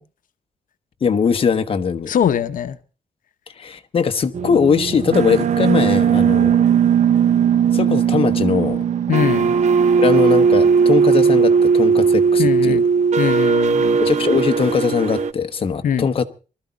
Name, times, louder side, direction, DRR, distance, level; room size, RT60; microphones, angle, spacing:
voice 1, 1.0-2.1 3.6-6.6 7.7-8.8 10.0-12.8 14.0-16.2, left 6 dB, 40° left, 1.1 m, -20 dB
voice 2, 2.1-2.8 9.1-9.5 12.4-12.8 13.2-14.0 15.8-16.1, left 8 dB, 70° left, 0.8 m, -21 dB
sound 1, 4.3-15.3, right 6 dB, 55° right, 0.7 m, -17 dB
20.0 x 13.5 x 4.0 m
wide cardioid pair, 170°, 14 cm